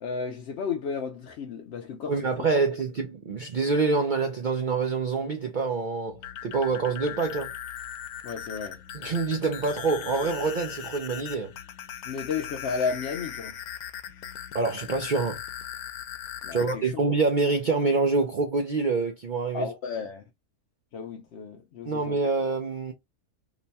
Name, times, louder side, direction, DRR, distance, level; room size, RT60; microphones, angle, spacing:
voice 1, 0.0-2.3 8.2-8.8 12.0-13.5 16.4-16.9 19.5-20.2 20.9-22.2, left 5 dB, 65° left, 0.7 m, -33 dB
voice 2, 2.1-7.5 8.9-11.5 14.5-15.4 16.5-19.7 21.9-22.9, right 4 dB, 75° right, 0.4 m, -26 dB
sound 1, 6.1-16.7, left 9 dB, 85° left, 1.1 m, -39 dB
3.0 x 2.2 x 4.0 m
omnidirectional pair, 1.5 m